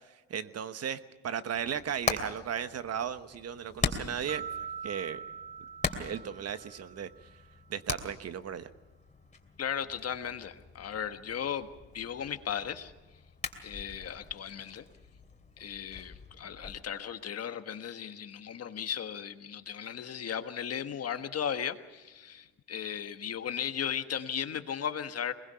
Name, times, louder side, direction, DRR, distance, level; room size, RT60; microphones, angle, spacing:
voice 1, 0.3-4.4 4.8-5.2 6.0-7.1 7.7-8.7, right 8 dB, 55° right, 11 dB, 1.2 m, -35 dB
Hammer, 1.5-16.8, left 3 dB, 25° left, 2.8 m, -41 dB
sound 1, 4.3-7.4, right 7 dB, 35° right, 4.9 m, -43 dB
voice 2, 9.6-11.7 11.9-12.9 13.6-14.8 15.6-25.3, left 8 dB, 55° left, 9 dB, 1.4 m, -36 dB
22.0 x 21.5 x 5.7 m, 1.2 s
cardioid pair, 90°, 30 cm